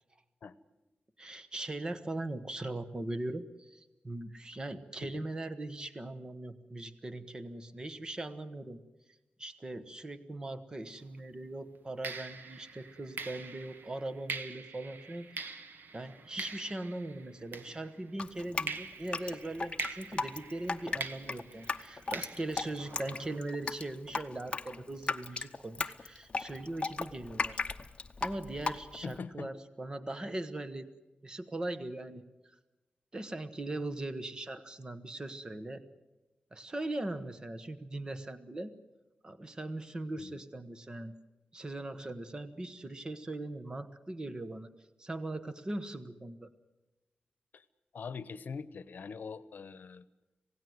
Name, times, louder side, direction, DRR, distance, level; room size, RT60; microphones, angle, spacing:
voice 1, 1.2-8.8 9.4-15.7 15.9-27.6 28.2-30.9 31.2-32.6 33.1-35.8 36.5-38.7 39.2-41.1 41.5-44.7 45.0-46.5, right 2 dB, 25° right, 11 dB, 1.2 m, -40 dB
sound 1, 10.9-11.1 12.0-18.2 18.7-23.4, right 4 dB, 75° right, 1.5 m, -44 dB
Drip, 18.2-29.2, left 4 dB, 30° left, 0.9 m, -36 dB
voice 2, 29.0-29.5 40.2-40.4 47.5-47.6 47.9-50.0, left 5 dB, 65° left, 16 dB, 1.0 m, -43 dB
26.5 x 17.5 x 7.9 m, 1.1 s
wide cardioid pair, 160°, 3 cm